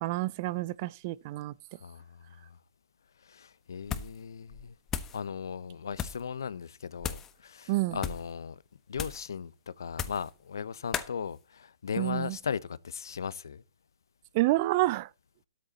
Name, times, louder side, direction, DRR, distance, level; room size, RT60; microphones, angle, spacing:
voice 1, 0.0-1.5 7.7-8.0 12.0-12.4 14.3-15.1, right 18 dB, 35° right, 0.5 m, -28 dB
voice 2, 1.8-2.4 3.3-4.7 5.1-8.6 8.9-13.6, left 7 dB, 65° left, 0.9 m, -37 dB
sound 1, 3.8-4.2 4.5-5.2 5.9-6.3 7.0-7.3 7.9-8.3 8.9-9.3 9.9-10.3 10.9-11.1, left 8 dB, 15° left, 1.2 m, -36 dB
13.0 x 10.5 x 4.2 m
hypercardioid pair, 135°, 2 cm